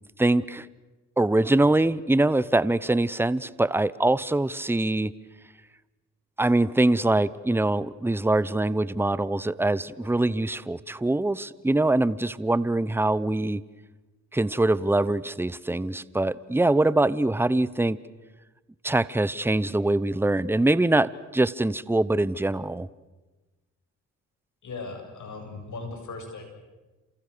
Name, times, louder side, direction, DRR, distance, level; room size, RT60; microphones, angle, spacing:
voice 1, 0.2-0.7 1.2-5.1 6.4-13.6 14.3-18.0 18.8-22.9, right 2 dB, 5° right, 18 dB, 0.9 m, -23 dB
voice 2, 24.6-26.4, left 3 dB, 60° left, 4 dB, 7.8 m, -38 dB
30.0 x 27.5 x 6.9 m, 1.2 s
supercardioid pair, 70°, 34 cm